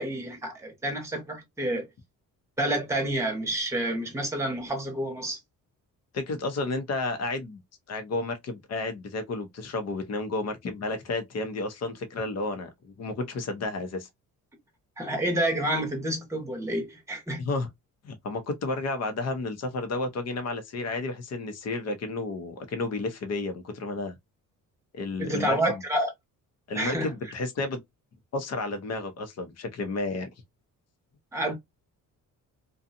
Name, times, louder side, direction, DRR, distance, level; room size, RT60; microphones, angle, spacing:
voice 1, 0.0-1.9 2.6-5.4 15.0-17.4 25.2-26.1 26.7-27.1 31.3-31.5, right 1 dB, 10° right, 0.9 m, -29 dB
voice 2, 6.1-7.6 7.9-14.1 17.4-17.7 18.0-24.2 24.9-25.8 26.7-27.8 28.3-30.3, left 3 dB, 50° left, 0.8 m, -32 dB
2.6 x 2.3 x 2.5 m
cardioid pair, 130°, 34 cm